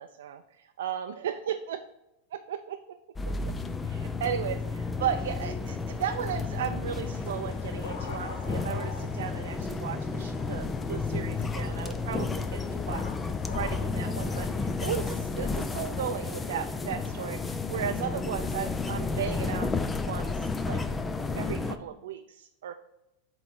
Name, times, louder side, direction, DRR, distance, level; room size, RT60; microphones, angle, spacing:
voice 1, 0.0-1.8 2.3-3.0 3.8-19.7 20.1-20.8 21.3-22.7, right 9 dB, 90° right, 6 dB, 0.4 m, -35 dB
sound 1, 3.2-21.8, left 4 dB, 15° left, 0.4 m, -32 dB
sound 2, 7.0-15.7, left 4 dB, 75° left, 1.1 m, -46 dB
7.8 x 3.1 x 5.5 m, 0.89 s
supercardioid pair, 140°, 0 cm